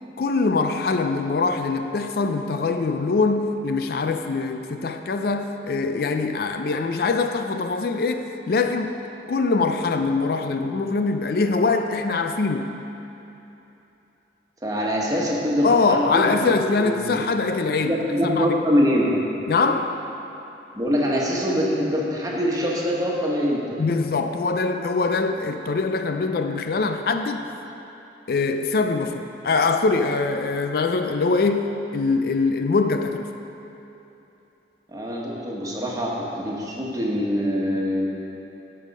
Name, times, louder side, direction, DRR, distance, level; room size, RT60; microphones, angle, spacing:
voice 1, 0.2-8.9 9.3-12.8 15.6-18.6 19.5-19.9 23.8-27.5 28.3-33.3, left 4 dB, 55° left, 7 dB, 0.4 m, -23 dB
voice 2, 14.6-16.5 16.8-17.2 17.9-19.1 20.7-23.8 34.9-38.1, equal, 20° right, -4 dB, 1.4 m, -24 dB
13.5 x 5.4 x 5.4 m, 3.0 s
head